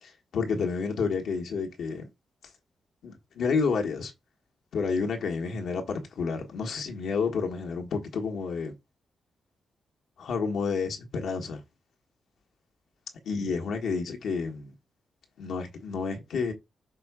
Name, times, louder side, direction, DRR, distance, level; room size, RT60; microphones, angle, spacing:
voice 1, 0.0-2.1 3.0-4.1 4.7-8.7 10.2-11.6 13.2-14.7 15.4-16.5, left 5 dB, 80° left, 1.5 m, -30 dB
6.1 x 3.5 x 4.8 m
supercardioid pair, 55°, 0 cm